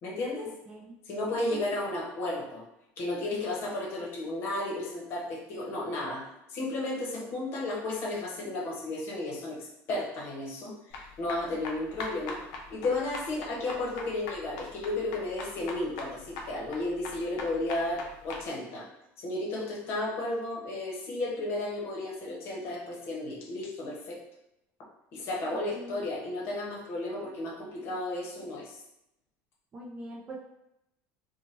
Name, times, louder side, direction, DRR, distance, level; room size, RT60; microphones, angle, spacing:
voice 1, 0.0-0.5 1.1-2.6 3.0-9.6 9.9-12.4 12.7-18.9 19.2-24.2 25.1-28.8, left 2 dB, 45° left, -3 dB, 0.8 m, -33 dB
voice 2, 0.7-1.0 1.5-1.6 25.7-26.1 29.7-30.4, right 2 dB, 20° right, -2 dB, 0.4 m, -42 dB
sound 1, 10.9-18.4, left 3 dB, 70° left, 0.6 m, -41 dB
2.7 x 2.1 x 3.1 m, 0.85 s
cardioid pair, 160°, 6 cm